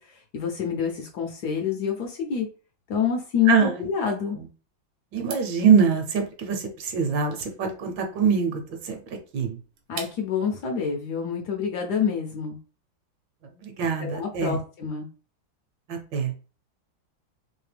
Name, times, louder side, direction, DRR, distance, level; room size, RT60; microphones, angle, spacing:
voice 1, 0.0-2.5 2.9-4.4 9.9-12.6 14.0-15.1, left 7 dB, 70° left, 2 dB, 1.0 m, -27 dB
voice 2, 3.5-3.9 4.4-4.5 5.1-9.6 13.5-14.6 15.9-16.3, right 6 dB, 70° right, 5 dB, 1.3 m, -24 dB
sound 1, 5.2-10.5, right 7 dB, 90° right, 1.5 m, -44 dB
3.4 x 2.7 x 3.2 m, 0.36 s
omnidirectional pair, 2.2 m